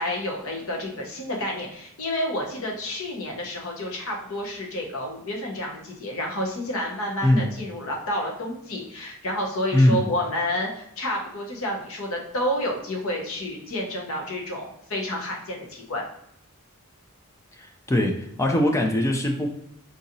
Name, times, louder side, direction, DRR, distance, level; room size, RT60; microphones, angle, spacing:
voice 1, 0.0-16.0, left 1 dB, 65° left, 0 dB, 0.9 m, -30 dB
voice 2, 9.7-10.0 17.6-19.5, left 1 dB, 15° left, 2 dB, 0.3 m, -21 dB
3.9 x 2.7 x 2.7 m, 0.76 s
head